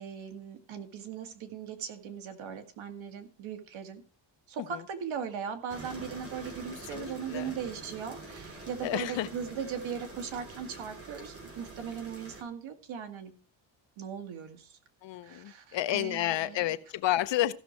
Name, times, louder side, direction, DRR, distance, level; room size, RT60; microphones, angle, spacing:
voice 1, 0.0-4.0 4.5-13.3 14.0-14.8 15.2-16.7, right 7 dB, 85° right, 6 dB, 2.0 m, -39 dB
sound 1, 5.7-12.4, right 2 dB, 30° right, 3.1 m, -46 dB
voice 2, 6.9-7.5 8.8-9.3 15.0-17.5, left 14 dB, 70° left, 13 dB, 0.8 m, -31 dB
15.0 x 6.3 x 4.4 m, 0.39 s
cardioid pair, 165°, 46 cm